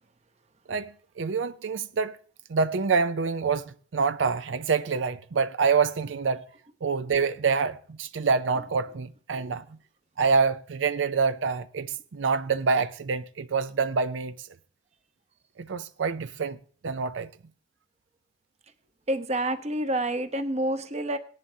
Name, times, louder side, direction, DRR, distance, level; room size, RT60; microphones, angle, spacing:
voice 1, 1.2-2.2 2.5-6.4 6.8-9.6 10.2-14.3 15.6-16.6 16.8-17.3, right 5 dB, 85° right, 0.5 m, -26 dB
voice 2, 19.1-21.2, right 1 dB, 35° right, 0.8 m, -28 dB
17.5 x 10.5 x 2.7 m
head